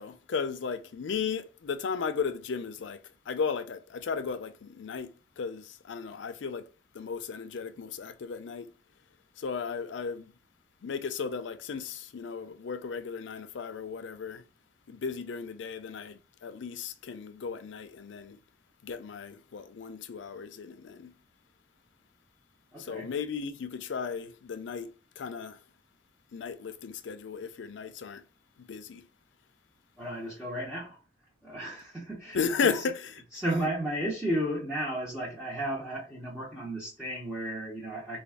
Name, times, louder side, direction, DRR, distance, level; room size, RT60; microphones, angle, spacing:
voice 1, 0.0-3.0 3.3-6.7 6.9-8.7 9.4-10.3 10.8-14.4 14.9-18.4 18.8-21.1 22.8-24.9 25.2-25.6 26.3-28.2 28.6-29.1 32.3-33.2, left 5 dB, 75° left, 0.4 m, -35 dB
voice 2, 22.7-23.1 30.0-31.0 31.4-32.8 33.3-38.2, right 1 dB, 5° right, 0.7 m, -34 dB
3.4 x 2.2 x 3.4 m
head